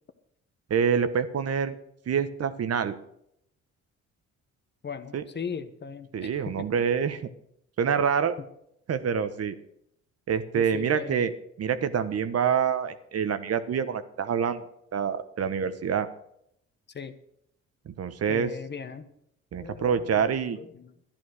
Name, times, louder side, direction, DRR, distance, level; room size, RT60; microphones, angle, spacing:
voice 1, 0.7-1.7 2.1-2.9 5.1-5.2 6.1-7.3 7.8-8.3 8.9-9.5 10.3-11.3 11.6-14.6 14.9-16.1 17.9-18.5 19.5-20.6, right 7 dB, 55° right, 11 dB, 1.1 m, -26 dB
voice 2, 4.8-6.7 10.5-11.2 16.9-17.1 18.3-19.1 19.6-20.3 20.5-20.9, left 6 dB, 35° left, 10 dB, 1.1 m, -38 dB
11.5 x 10.5 x 6.5 m, 0.74 s
cardioid pair, 90°, 30 cm